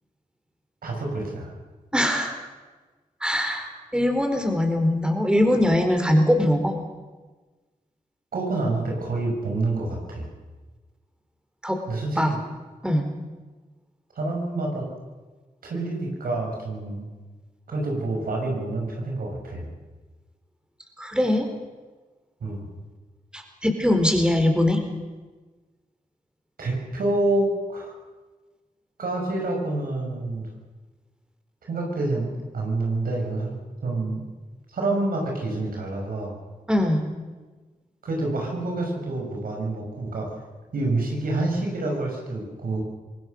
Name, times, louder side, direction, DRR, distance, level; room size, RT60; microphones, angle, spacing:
voice 1, 0.8-1.5 3.6-3.7 8.3-10.3 11.9-12.4 14.1-14.9 15.6-17.0 17.7-19.7 22.4-22.7 26.6-28.0 29.0-30.5 31.7-33.5 33.8-34.2 34.7-36.3 38.0-40.3 40.7-42.8, right 2 dB, 85° right, 0 dB, 6.2 m, -27 dB
voice 2, 1.9-2.3 3.2-6.7 11.6-11.8 12.2-12.3 12.8-13.1 21.0-21.5 23.3-24.8 36.7-37.1, left 1 dB, 5° right, 4 dB, 4.5 m, -21 dB
25.0 x 19.0 x 6.6 m, 1.3 s
cardioid pair, 55°, 15 cm